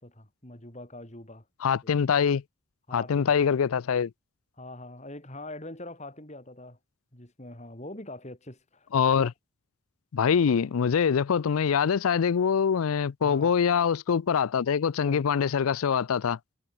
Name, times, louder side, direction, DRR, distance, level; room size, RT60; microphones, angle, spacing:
voice 1, 0.0-1.5 1.8-1.9 2.9-3.3 4.6-6.8 7.1-8.9 9.2-9.3 13.2-13.6 15.0-15.3, left 1 dB, 30° left, 3.5 m, -43 dB
voice 2, 1.6-2.4 2.9-4.1 8.9-9.3 10.1-16.4, left 7 dB, 80° left, 0.4 m, -24 dB
head